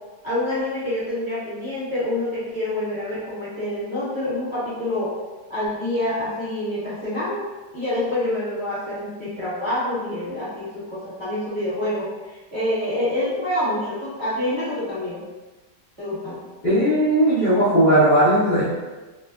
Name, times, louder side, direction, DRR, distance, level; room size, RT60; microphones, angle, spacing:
voice 1, 0.2-5.1 5.5-7.4 7.7-15.2 16.0-16.4, left 1 dB, 20° right, -14 dB, 1.1 m, -27 dB
voice 2, 16.6-18.7, right 1 dB, 45° left, -13 dB, 0.6 m, -17 dB
3.0 x 2.2 x 2.3 m, 1.2 s
omnidirectional pair, 2.0 m